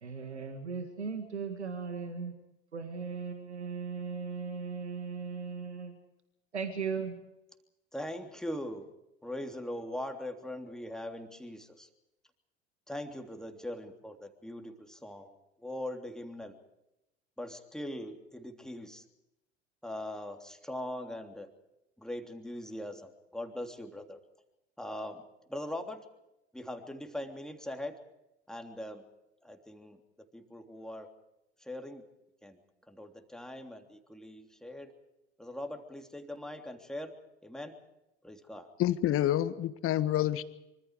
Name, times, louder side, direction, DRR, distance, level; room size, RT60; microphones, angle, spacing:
voice 1, 0.0-2.3 2.7-5.9 6.5-7.2, right 5 dB, 85° right, 7 dB, 2.0 m, -37 dB
voice 2, 7.9-8.9 9.2-11.9 12.9-16.5 17.4-19.0 19.8-21.5 22.0-24.2 24.8-25.2 25.5-26.0 26.5-28.0 28.5-29.0 29.4-31.1 31.6-32.0 32.4-32.6 32.9-34.9 35.4-37.1 37.4-37.8 38.2-38.7, left 1 dB, ahead, 4 dB, 3.2 m, -41 dB
voice 3, 38.8-40.4, left 12 dB, 40° left, 14 dB, 1.6 m, -28 dB
25.5 x 25.5 x 4.9 m, 0.90 s
figure-of-eight pair, 70°, 33 cm